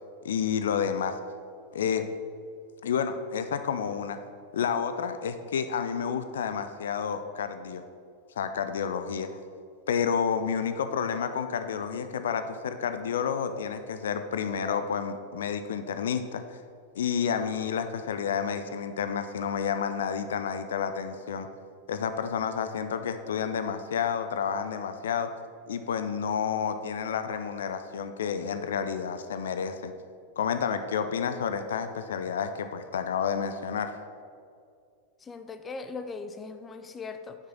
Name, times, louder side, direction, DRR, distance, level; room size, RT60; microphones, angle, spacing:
voice 1, 0.2-1.2 1.7-2.0 2.8-4.2 4.5-7.8 8.4-9.3 9.9-16.6 17.0-21.5 21.9-25.3 25.7-29.9 30.4-33.9, left 7 dB, 60° left, 9 dB, 0.5 m, -30 dB
voice 2, 35.2-37.4, left 4 dB, 20° left, 9 dB, 0.6 m, -39 dB
7.5 x 6.2 x 6.1 m, 2.3 s
figure-of-eight pair, 90°, 0 cm